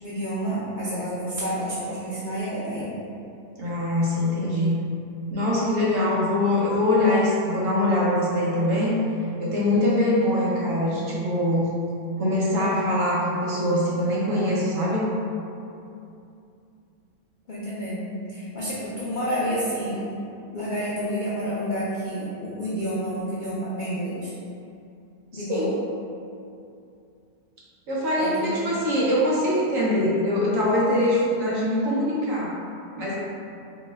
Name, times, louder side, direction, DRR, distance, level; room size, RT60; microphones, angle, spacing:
voice 1, 0.0-2.9 17.5-20.0 20.5-24.3 25.3-25.7 28.2-28.8, equal, 80° left, -9 dB, 0.4 m, -29 dB
voice 2, 3.6-4.8 5.3-9.0 9.4-11.7 12.2-15.1 25.3-25.7 27.9-32.5 33.0-33.2, left 1 dB, 65° right, -6 dB, 1.1 m, -23 dB
4.2 x 2.1 x 3.2 m, 2.6 s
omnidirectional pair, 1.6 m